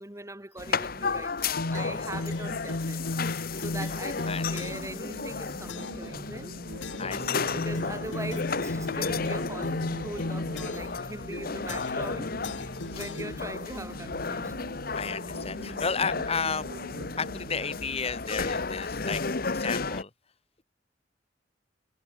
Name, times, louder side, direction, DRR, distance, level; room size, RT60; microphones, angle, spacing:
voice 1, 0.0-3.0 3.6-6.6 7.4-14.7, right 1 dB, 15° right, 2.7 m, -41 dB
sound 1, 0.6-20.0, left 4 dB, 55° left, 1.1 m, -33 dB
sound 2, 1.6-5.0 5.7-6.1 6.8-7.2 7.6-11.0 11.7-12.1 12.4-13.8, left 2 dB, 90° left, 1.3 m, -35 dB
voice 2, 4.3-4.7 7.0-7.5 12.6-13.0 14.9-16.7 17.2-19.2 19.5-20.1, left 5 dB, 35° left, 1.3 m, -33 dB
sound 3, 4.7-17.8, right 1 dB, 85° right, 4.0 m, -45 dB
head